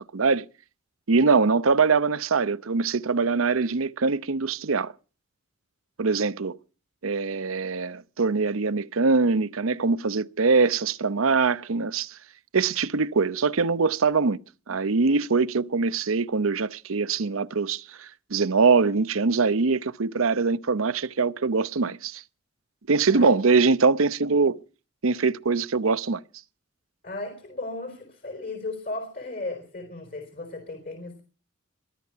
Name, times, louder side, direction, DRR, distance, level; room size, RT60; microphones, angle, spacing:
voice 1, 0.1-0.5 1.1-4.9 6.0-6.6 7.0-12.2 12.5-14.4 14.7-22.2 22.9-24.6 25.0-26.2, right 4 dB, 80° right, 0.8 m, -23 dB
voice 2, 27.0-31.2, left 2 dB, 45° left, 4.4 m, -35 dB
22.5 x 12.5 x 4.6 m
head